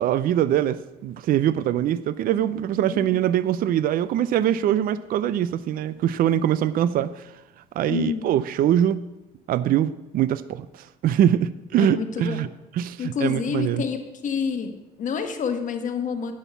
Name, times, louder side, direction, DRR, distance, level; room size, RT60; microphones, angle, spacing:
voice 1, 0.0-7.2 7.8-9.0 9.5-10.7 11.0-12.5 12.7-13.8, right 11 dB, 60° right, 16 dB, 0.5 m, -23 dB
voice 2, 7.9-8.4 11.7-12.4 13.0-14.0 14.2-16.3, left 6 dB, 50° left, 5 dB, 1.4 m, -28 dB
9.1 x 6.5 x 7.0 m, 0.95 s
cardioid pair, 110°, 17 cm